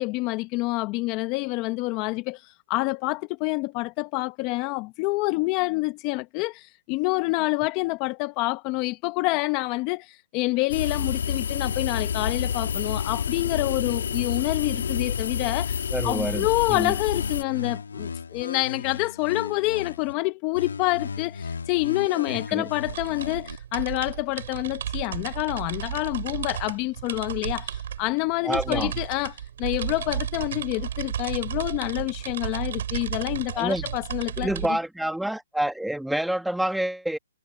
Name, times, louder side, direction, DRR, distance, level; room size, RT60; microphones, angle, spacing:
voice 1, 0.0-34.5, left 22 dB, 25° left, 0.8 m, -27 dB
sound 1, 10.7-17.4, left 7 dB, 65° left, 2.2 m, -28 dB
voice 2, 15.9-16.9 22.3-22.7 28.4-28.9 33.5-33.9 34.4-37.2, right 1 dB, ahead, 1.6 m, -28 dB
sound 2, 17.1-20.1 20.5-23.6, left 5 dB, 85° left, 1.5 m, -36 dB
sound 3, 22.8-34.7, right 9 dB, 50° right, 4.4 m, -33 dB
hypercardioid pair, 160°, 0 cm